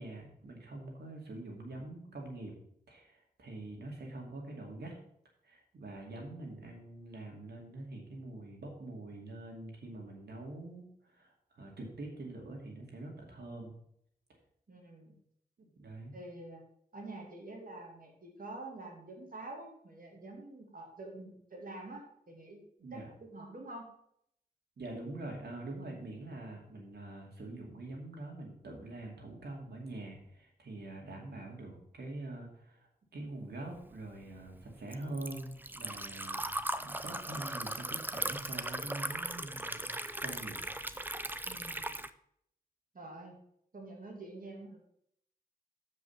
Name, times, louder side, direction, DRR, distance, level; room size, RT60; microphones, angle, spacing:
voice 1, 0.0-2.5 2.9-4.9 5.4-13.8 15.6-16.1 22.8-23.1 24.8-40.6, right 2 dB, 85° right, 0 dB, 2.4 m, -45 dB
voice 2, 14.7-15.2 16.1-16.6 16.9-22.6 22.9-23.9 41.4-42.0 42.9-43.4 43.7-44.8, right 2 dB, 55° right, 0 dB, 2.3 m, -47 dB
Liquid, 33.8-42.1, right 1 dB, 10° right, 0.6 m, -38 dB
7.5 x 5.4 x 7.0 m, 0.71 s
cardioid pair, 50°, 17 cm